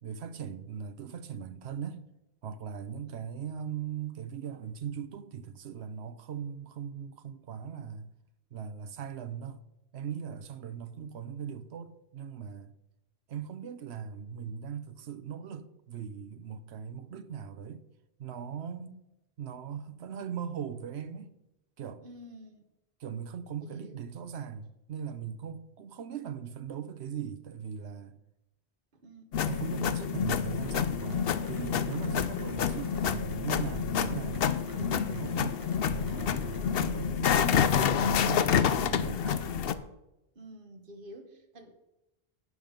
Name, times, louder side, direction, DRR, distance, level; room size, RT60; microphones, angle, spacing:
voice 1, 0.0-2.0 2.4-8.1 8.5-9.7 9.9-12.7 13.3-17.8 18.2-19.0 19.4-21.3 21.8-22.1 23.0-28.2 29.4-34.5 34.7-39.6, right 7 dB, 90° right, 1.0 m, -39 dB
voice 2, 22.0-22.6 23.6-24.0 28.9-29.3 30.0-30.3 32.3-32.4 40.3-41.7, right 1 dB, 55° right, 1.5 m, -50 dB
sound 1, 29.3-39.8, left 8 dB, 70° left, 0.8 m, -28 dB
sound 2, 30.2-39.6, equal, 20° right, 2.1 m, -43 dB
11.5 x 9.1 x 5.2 m
omnidirectional pair, 1.1 m